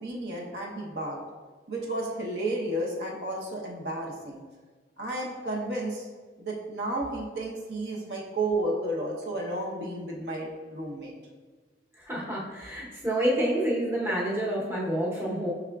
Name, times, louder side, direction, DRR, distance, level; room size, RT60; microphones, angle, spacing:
voice 1, 0.0-1.2 1.7-4.4 5.0-6.1 6.4-11.1, right 1 dB, 65° right, -2 dB, 0.8 m, -32 dB
voice 2, 12.1-15.5, right 1 dB, 15° right, -6 dB, 0.8 m, -28 dB
6.0 x 3.5 x 2.3 m, 1.4 s
head